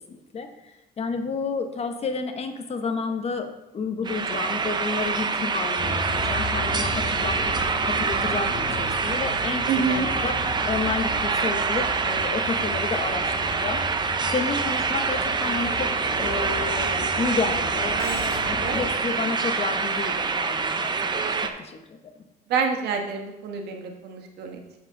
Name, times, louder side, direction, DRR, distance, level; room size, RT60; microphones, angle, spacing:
voice 1, 0.1-0.5 1.0-7.4 7.8-10.4 10.6-15.9 16.2-18.0 18.5-22.0, left 4 dB, 40° left, 7 dB, 0.9 m, -31 dB
sound 1, 4.1-21.5, right 4 dB, 25° right, 0.6 m, -26 dB
Bus, 5.8-18.9, left 2 dB, 65° left, 3.3 m, -35 dB
voice 2, 9.7-10.1 17.9-18.8 22.5-24.8, right 5 dB, 75° right, 3 dB, 1.4 m, -28 dB
7.3 x 7.2 x 3.8 m, 0.95 s
cardioid pair, 110°, 17 cm